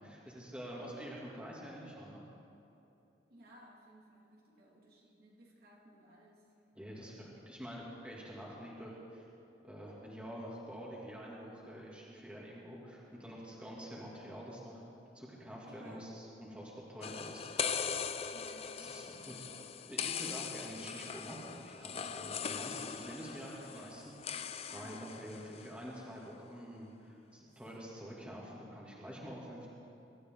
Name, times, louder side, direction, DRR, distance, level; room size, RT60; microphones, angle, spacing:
voice 1, 0.0-2.2 6.7-9.2 9.6-14.8 15.1-17.7 18.7-19.5 19.9-29.7, equal, 5° right, -5 dB, 2.7 m, -47 dB
voice 2, 3.3-6.5 15.6-16.1 18.3-19.5 24.7-25.1 27.4-27.6, equal, 55° right, -3 dB, 2.6 m, -58 dB
sound 1, 17.0-25.7, left 7 dB, 35° left, 0.5 m, -40 dB
24.0 x 13.0 x 3.9 m, 2.9 s
head